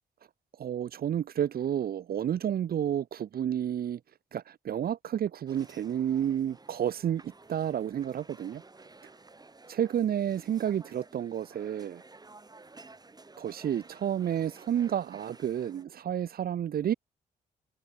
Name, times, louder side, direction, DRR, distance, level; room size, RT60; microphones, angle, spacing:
voice 1, 0.6-4.0 4.3-8.6 9.7-12.0 13.4-16.9, right 10 dB, 60° right, 0.9 m, -30 dB
sound 1, 5.5-15.8, right 3 dB, 25° right, 1.8 m, -54 dB
open air
supercardioid pair, 65°, 17 cm